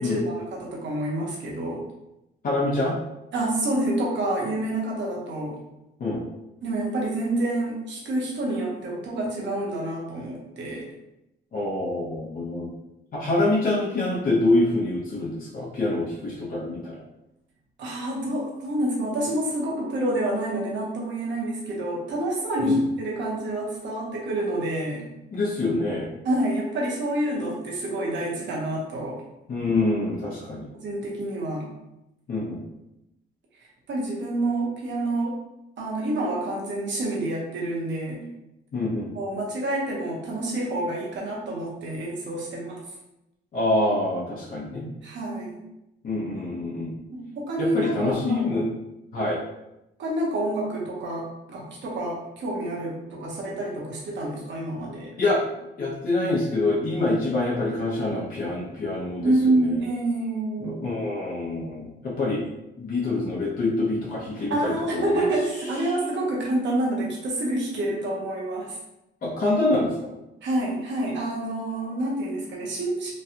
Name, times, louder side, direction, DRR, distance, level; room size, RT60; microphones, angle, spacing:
voice 1, 0.0-1.9 3.3-5.6 6.6-10.8 17.8-25.1 26.2-29.2 30.8-31.7 33.9-35.4 35.8-38.3 39.1-42.8 45.0-45.6 47.1-48.5 50.0-55.1 59.2-61.0 64.5-68.8 70.4-73.1, right 1 dB, 65° right, -3 dB, 0.9 m, -28 dB
voice 2, 2.4-3.0 6.0-6.2 11.5-12.7 13.1-17.0 22.6-22.8 25.3-26.1 29.5-30.7 32.3-32.6 38.7-39.1 43.5-44.9 46.0-46.9 47.6-48.7 49.1-49.4 55.2-55.4 55.8-59.8 60.6-62.4 62.8-65.2 65.9-66.0 69.2-70.1, left 2 dB, 45° left, -6 dB, 0.8 m, -26 dB
3.1 x 2.3 x 2.8 m, 0.91 s
cardioid pair, 90°, 20 cm